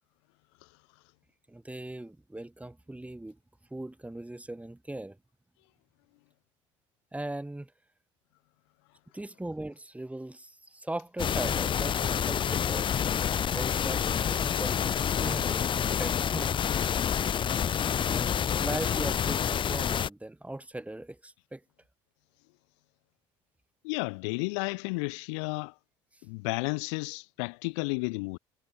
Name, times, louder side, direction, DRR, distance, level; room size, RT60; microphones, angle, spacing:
voice 1, 1.5-3.4 3.7-5.2 7.1-7.7 9.1-12.9 13.5-16.6 18.1-21.6, right 1 dB, 10° right, 6.7 m, -39 dB
sound 1, 11.2-20.1, left 8 dB, 35° left, 0.6 m, -28 dB
voice 2, 23.8-25.7 26.2-28.4, left 31 dB, 70° left, 1.8 m, -32 dB
hypercardioid pair, 65°, 15 cm